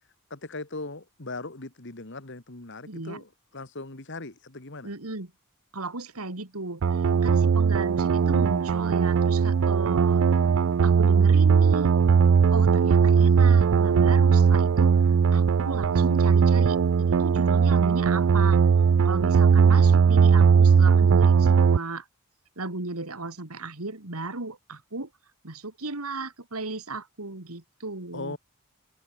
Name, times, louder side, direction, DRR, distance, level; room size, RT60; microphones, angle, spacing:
voice 1, 0.3-4.9 28.1-28.4, left 2 dB, 55° left, 2.0 m, -39 dB
voice 2, 2.9-3.2 4.8-5.3 5.7-10.2 10.8-11.9 12.5-14.9 15.3-18.6 19.0-22.1 22.6-25.1 25.4-28.4, right 2 dB, 80° right, 2.8 m, -35 dB
sound 1, 6.8-21.8, right 6 dB, 60° right, 0.4 m, -19 dB
head